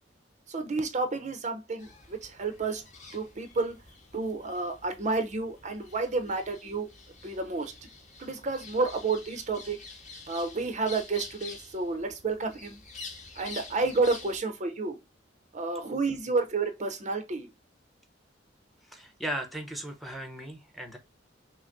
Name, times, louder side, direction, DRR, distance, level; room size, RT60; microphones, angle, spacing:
voice 1, 0.5-2.8 3.1-3.7 4.1-6.9 7.2-7.7 8.2-9.8 10.3-12.8 13.4-15.0 15.5-17.5, right 3 dB, 40° right, 0.6 m, -30 dB
sound 1, 1.8-14.4, left 4 dB, 40° left, 1.2 m, -48 dB
voice 2, 18.8-21.0, right 1 dB, ahead, 0.7 m, -37 dB
5.9 x 2.0 x 2.5 m
head